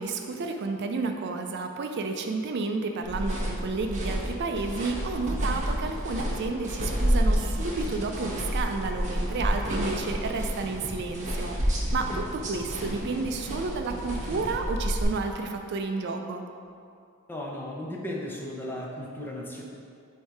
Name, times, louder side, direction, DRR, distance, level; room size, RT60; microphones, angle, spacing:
voice 1, 0.0-16.4, right 3 dB, 50° right, 4 dB, 0.4 m, -31 dB
sound 1, 3.0-15.0, equal, 35° right, 0.9 m, -30 dB
voice 2, 17.3-19.6, left 1 dB, 10° left, -2 dB, 0.6 m, -35 dB
7.7 x 2.7 x 4.6 m, 2.4 s
head